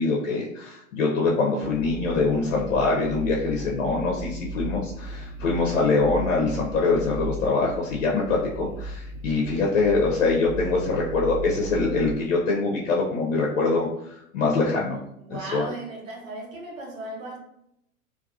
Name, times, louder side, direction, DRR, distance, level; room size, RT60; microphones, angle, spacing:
voice 1, 0.0-15.0 15.3-15.6, left 3 dB, 65° left, 0.7 m, -24 dB
sound 1, 1.6-12.2, right 1 dB, 30° right, 0.5 m, -36 dB
voice 2, 15.2-17.4, right 2 dB, 70° right, 0.9 m, -36 dB
2.6 x 2.3 x 2.3 m
figure-of-eight pair, 95°, 42 cm